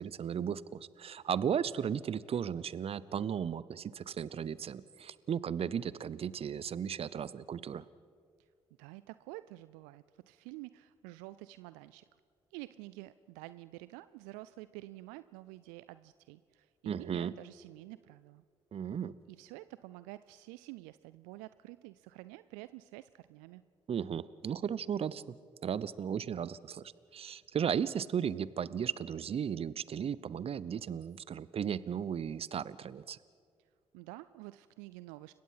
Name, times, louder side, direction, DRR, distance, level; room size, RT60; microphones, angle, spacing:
voice 1, 0.0-7.9 16.9-17.3 18.7-19.1 23.9-25.4 25.6-26.8 27.1-33.2, right 8 dB, 50° right, 19 dB, 0.8 m, -35 dB
voice 2, 8.8-12.0 12.5-18.4 19.3-23.6 33.9-35.3, right 18 dB, 80° right, 15 dB, 0.4 m, -49 dB
29.5 x 16.0 x 5.7 m, 2.1 s
hypercardioid pair, 45°, 13 cm